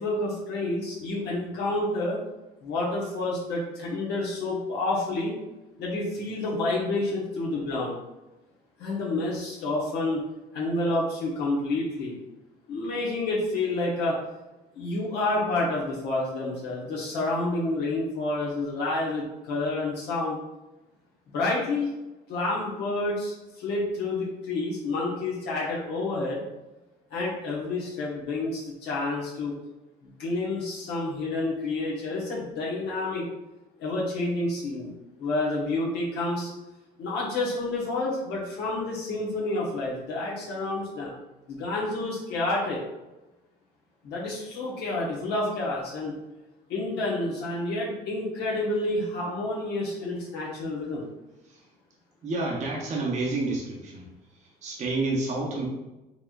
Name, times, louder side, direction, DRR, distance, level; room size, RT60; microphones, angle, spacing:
voice 1, 0.0-2.2 2.6-5.3 5.8-7.9 8.8-10.2 10.5-12.1 12.7-14.1 14.8-20.4 21.3-21.9 22.3-26.4 27.1-29.5 30.2-33.3 33.8-34.9 35.2-36.5 37.0-41.1 41.5-42.8 44.0-46.1 46.7-51.0, left 2 dB, 80° left, -4 dB, 1.1 m, -29 dB
voice 2, 52.2-54.0 54.6-55.6, right 2 dB, 45° right, -3 dB, 0.8 m, -29 dB
4.5 x 2.9 x 2.4 m, 1.0 s
cardioid pair, 110°, 17 cm